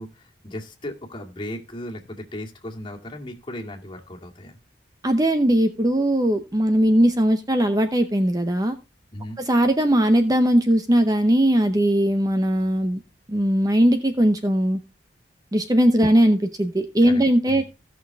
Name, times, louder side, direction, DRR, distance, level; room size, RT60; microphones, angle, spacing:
voice 1, 0.0-4.6 9.1-9.4 17.1-17.6, left 1 dB, 30° left, 0 dB, 2.2 m, -36 dB
voice 2, 5.0-8.7 9.5-13.0 13.3-14.8 15.5-17.6, right 1 dB, 20° right, 7 dB, 0.8 m, -19 dB
16.5 x 6.2 x 3.5 m, 0.28 s
head